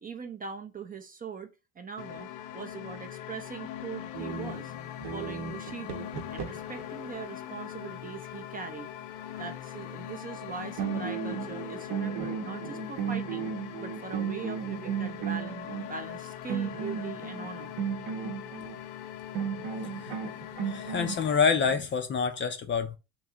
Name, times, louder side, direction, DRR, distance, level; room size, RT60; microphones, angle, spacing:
voice 1, 0.0-2.3 2.5-4.7 5.1-8.9 9.4-13.5 13.8-17.7, right 5 dB, 20° right, 0.5 m, -41 dB
sound 1, 2.0-21.4, left 11 dB, 70° left, 0.6 m, -41 dB
sound 2, 4.1-6.8 10.4-10.5 10.8-15.9 16.5-18.8 19.3-21.1, right 7 dB, 65° right, 0.9 m, -35 dB
voice 2, 20.7-23.0, left 6 dB, 30° left, 0.5 m, -27 dB
3.0 x 2.9 x 3.6 m
supercardioid pair, 90°, 41 cm